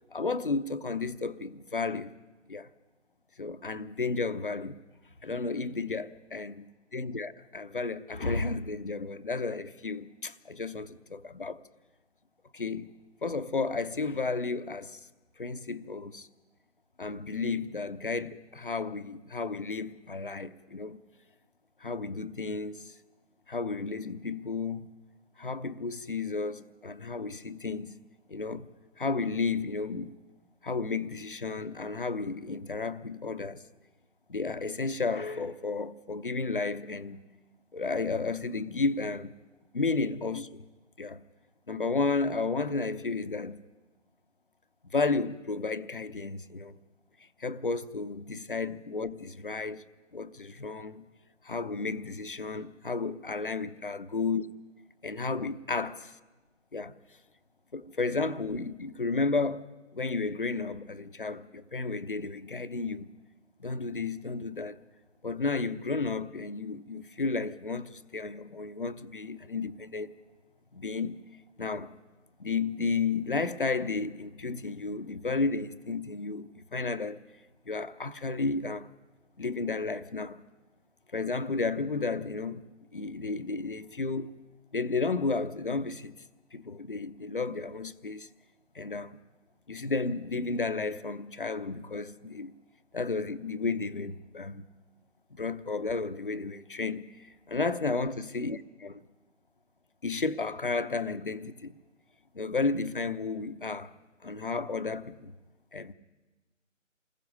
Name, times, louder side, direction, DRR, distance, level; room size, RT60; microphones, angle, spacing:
voice 1, 0.1-2.1 2.5-2.7 3.4-4.8 5.2-6.5 6.9-11.6 12.5-12.9 13.2-15.1 15.4-16.3 17.0-21.0 21.8-22.9 23.5-24.9 25.4-28.0 28.3-28.7 29.0-30.2 30.6-33.6 34.3-37.2 37.7-39.3 39.7-40.6 41.0-41.2 41.7-43.6 44.9-46.8 47.4-49.8 50.1-51.0 51.4-54.4 55.0-56.0 56.7-57.0 57.7-59.7 59.9-63.1 63.6-64.8 65.2-70.1 70.7-71.2 71.6-71.9 72.4-77.2 77.7-78.9 79.4-80.4 81.1-82.6 82.9-84.3 84.7-86.1 86.5-88.3 88.7-89.2 89.7-92.5 92.9-94.6 95.3-99.0 100.0-101.8 102.3-103.9 104.2-105.3 105.7-105.9, left 4 dB, 40° left, 0.8 m, -32 dB
28.5 x 20.5 x 5.3 m
figure-of-eight pair, 165°, 39 cm